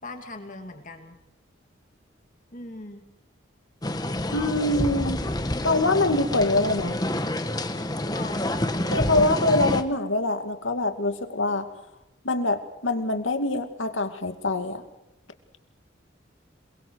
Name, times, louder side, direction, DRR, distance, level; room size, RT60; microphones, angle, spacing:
voice 1, 0.0-1.2 2.5-3.0 8.1-9.1, left 2 dB, 40° left, 5 dB, 2.6 m, -40 dB
sound 1, 3.8-9.8, left 1 dB, 20° left, 1.3 m, -28 dB
voice 2, 4.3-5.2 5.6-7.0 8.9-11.7 12.2-14.8, left 2 dB, 85° left, 6 dB, 2.5 m, -24 dB
28.0 x 23.0 x 4.8 m, 0.89 s
head